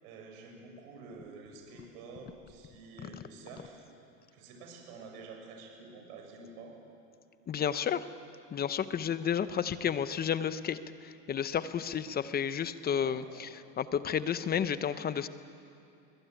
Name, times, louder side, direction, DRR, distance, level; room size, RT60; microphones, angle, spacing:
voice 1, 0.0-3.9 4.3-6.8 12.9-13.5, right 3 dB, 65° right, 1 dB, 7.4 m, -49 dB
voice 2, 7.5-8.1 8.5-10.8 11.0-13.5 13.8-15.3, left 8 dB, 20° left, 14 dB, 0.8 m, -31 dB
22.0 x 22.0 x 9.1 m, 2.6 s
supercardioid pair, 120°, 49 cm